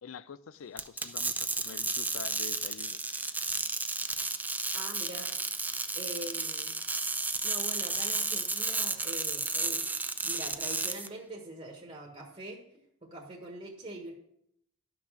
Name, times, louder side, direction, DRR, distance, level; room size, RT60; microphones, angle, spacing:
voice 1, 0.0-3.0, left 6 dB, 80° left, 0.5 m, -46 dB
sound 1, 0.8-11.1, right 3 dB, 10° right, 0.5 m, -33 dB
voice 2, 4.7-5.3 5.9-6.8 7.4-9.8 10.2-12.6 13.0-14.1, right 1 dB, 30° right, 1.3 m, -43 dB
11.5 x 6.0 x 6.0 m
head